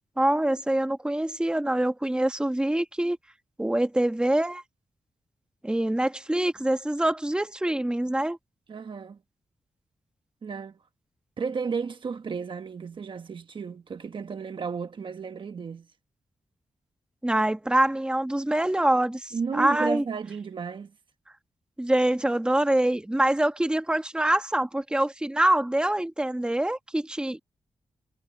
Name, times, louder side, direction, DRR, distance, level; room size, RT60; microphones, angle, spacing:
voice 1, 0.2-3.2 3.6-4.6 5.6-8.4 17.2-20.0 21.8-27.4, right 1 dB, 10° right, 1.5 m, -25 dB
voice 2, 8.7-9.2 10.4-10.8 11.4-15.9 19.3-20.9, right 5 dB, 50° right, 1.2 m, -33 dB
wide cardioid pair, 120°, 11 cm